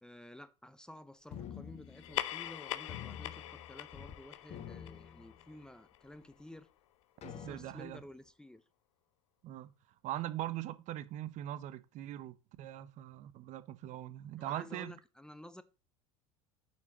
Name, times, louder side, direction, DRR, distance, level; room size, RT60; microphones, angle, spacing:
voice 1, 0.0-6.7 7.3-8.6 14.4-15.6, left 1 dB, 5° left, 0.6 m, -52 dB
sound 1, 1.3-2.5 2.9-4.2 4.4-5.8 6.3-6.4 7.2-8.0, left 9 dB, 45° left, 1.1 m, -48 dB
sound 2, 1.9-6.8, left 14 dB, 85° left, 0.5 m, -43 dB
voice 2, 7.2-8.0 9.4-9.7 10.0-14.9, right 13 dB, 50° right, 0.7 m, -41 dB
5.7 x 4.6 x 6.0 m
supercardioid pair, 95°, 16 cm